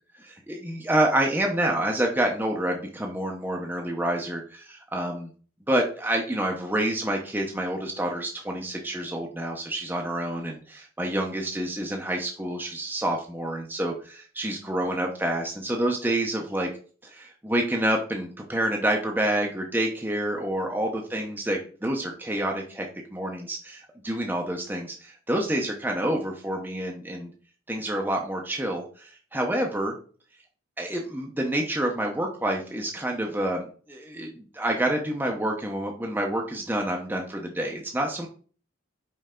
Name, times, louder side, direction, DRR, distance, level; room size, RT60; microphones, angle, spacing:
voice 1, 0.2-5.3 5.7-16.7 17.0-27.3 27.7-29.9 30.8-38.3, right 1 dB, 10° right, 0 dB, 0.7 m, -28 dB
5.4 x 4.8 x 3.7 m, 0.41 s
head